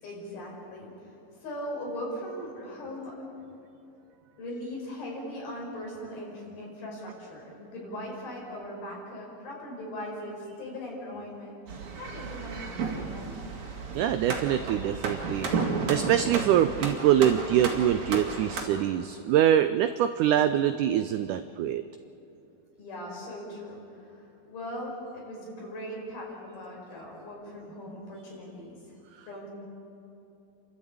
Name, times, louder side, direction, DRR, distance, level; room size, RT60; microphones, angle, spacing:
voice 1, 0.0-1.1 1.4-3.2 4.4-11.6 12.0-13.3 22.8-24.2 24.5-28.8 29.3-29.5, left 1 dB, 80° left, -2 dB, 7.0 m, -39 dB
sound 1, 11.7-18.6, right 4 dB, 50° right, 3.4 m, -33 dB
voice 2, 13.9-15.5 15.9-21.8, right 10 dB, 90° right, 10 dB, 1.7 m, -24 dB
30.0 x 12.5 x 8.6 m, 3.0 s
omnidirectional pair, 4.2 m